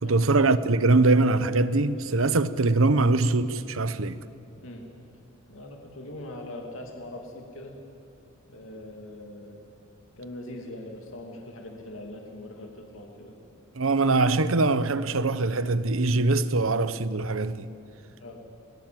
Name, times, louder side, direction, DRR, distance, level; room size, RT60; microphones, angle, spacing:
voice 1, 0.0-4.2 13.8-17.7, right 3 dB, 70° right, 1.0 m, -22 dB
voice 2, 5.5-7.7 8.5-9.6 10.2-13.4 18.2-18.4, left 1 dB, 70° left, 2.7 m, -41 dB
29.5 x 21.5 x 7.7 m
head